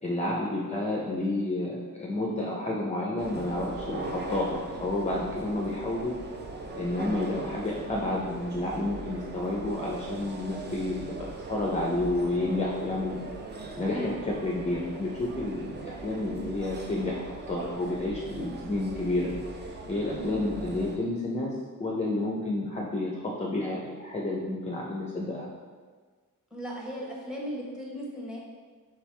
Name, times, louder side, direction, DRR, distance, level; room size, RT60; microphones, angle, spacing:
voice 1, 0.0-6.1 6.7-13.3 13.8-21.5 21.8-25.5, left 2 dB, 20° left, -3 dB, 0.5 m, -30 dB
sound 1, 3.2-21.0, right 3 dB, 30° right, 0.4 m, -40 dB
voice 2, 26.5-28.4, equal, ahead, -3 dB, 0.9 m, -37 dB
4.6 x 3.4 x 3.2 m, 1.5 s
wide cardioid pair, 135°, 33 cm